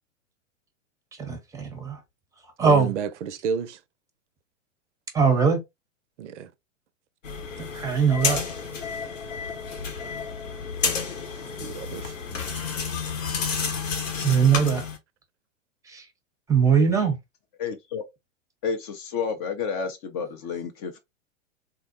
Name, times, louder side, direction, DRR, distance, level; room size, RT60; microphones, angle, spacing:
voice 1, 1.2-2.0 2.6-2.9 5.1-5.6 7.7-8.4 14.2-14.8 15.9-16.0 16.5-17.2, right 6 dB, 10° right, 0.6 m, -21 dB
voice 2, 2.6-3.8 6.2-6.5 11.6-12.1, right 7 dB, 65° right, 0.5 m, -31 dB
sound 1, 7.2-15.0, left 5 dB, 80° left, 1.0 m, -30 dB
voice 3, 17.6-18.0 18.6-21.0, left 6 dB, 30° left, 0.4 m, -30 dB
3.5 x 2.1 x 2.4 m
figure-of-eight pair, 100°, 38 cm